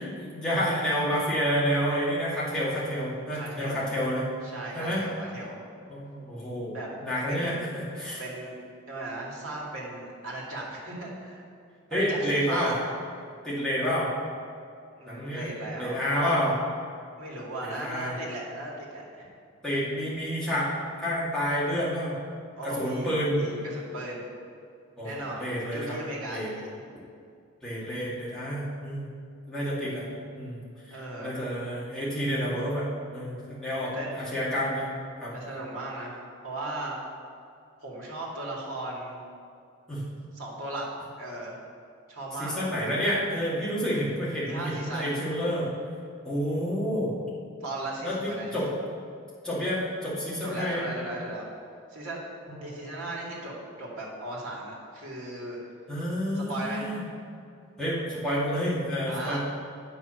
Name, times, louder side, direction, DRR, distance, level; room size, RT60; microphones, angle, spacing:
voice 1, 0.0-4.2 4.7-5.0 5.9-8.2 11.9-12.7 13.4-14.1 15.1-15.5 15.8-16.5 17.8-18.1 19.6-20.7 21.0-22.2 22.6-23.5 25.0-26.0 26.3-26.5 27.6-29.1 29.5-30.6 30.9-34.9 35.2-35.3 39.9-40.0 42.4-45.7 46.2-47.1 48.0-48.7 49.4-50.9 52.5-52.7 55.9-57.0 57.8-59.4, equal, 5° left, -10 dB, 2.3 m, -29 dB
voice 2, 3.3-3.9 4.5-5.6 6.7-6.9 7.3-7.6 8.2-8.6 8.9-11.4 11.9-12.9 15.0-16.4 17.2-19.3 22.5-24.2 25.0-26.8 30.9-31.4 33.9-34.1 35.3-37.0 37.8-39.2 40.3-40.9 41.2-41.6 42.1-42.9 44.4-45.1 47.6-48.7 50.4-51.5 51.9-52.2 52.6-53.5 53.8-55.6 56.4-57.0 59.1-59.4, right 2 dB, 75° right, -4 dB, 2.4 m, -37 dB
8.8 x 5.8 x 6.3 m, 2.3 s
head